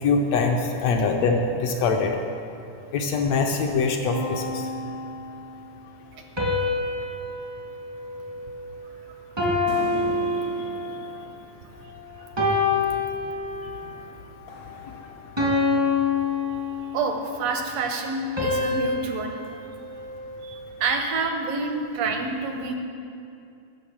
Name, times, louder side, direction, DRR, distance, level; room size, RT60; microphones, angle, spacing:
voice 1, 0.0-2.1 2.9-4.6, left 4 dB, 75° left, 3 dB, 1.6 m, -23 dB
sound 1, 4.1-5.4 6.4-8.9 9.4-11.1 11.6-11.9 12.4-13.9 14.4-14.7 15.4-17.3 18.4-20.7, left 3 dB, 25° right, 0.5 m, -27 dB
sound 2, 9.7-12.3 13.8-15.9, left 1 dB, 60° left, 0.9 m, -41 dB
voice 2, 16.9-19.4 20.4-22.8, right 4 dB, 75° right, 4 dB, 1.6 m, -28 dB
11.0 x 6.4 x 7.2 m, 2.6 s
omnidirectional pair, 3.6 m